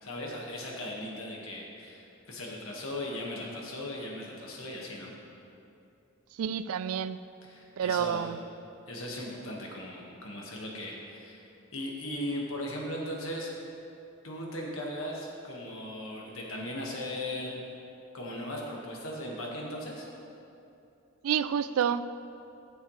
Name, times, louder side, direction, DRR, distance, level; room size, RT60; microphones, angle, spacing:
voice 1, 0.0-5.1 7.4-8.3 8.9-11.4 11.7-13.5 14.2-17.6 18.1-20.1, left 1 dB, 75° left, -2 dB, 1.7 m, -38 dB
voice 2, 6.4-7.2 7.8-8.4 21.2-22.2, right 8 dB, 85° right, 15 dB, 0.3 m, -29 dB
13.0 x 7.2 x 3.2 m, 2.7 s
head